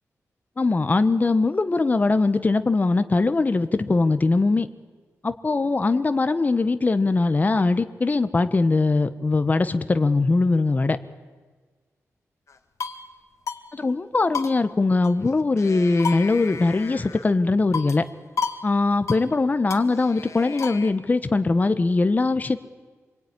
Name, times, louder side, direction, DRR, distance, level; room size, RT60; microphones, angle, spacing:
voice 1, 0.6-4.7 5.2-11.0 13.7-18.0 18.6-22.6, left 3 dB, 30° left, 11 dB, 1.1 m, -21 dB
sound 1, 12.5-13.1 13.5-13.6 13.9-14.0 14.3-15.3 15.6-17.3 17.7-18.1 18.4-18.6 18.9-19.3 19.7-20.9, left 5 dB, 65° left, 1.9 m, -32 dB
26.5 x 22.5 x 9.8 m, 1.4 s
wide cardioid pair, 125°, 6 cm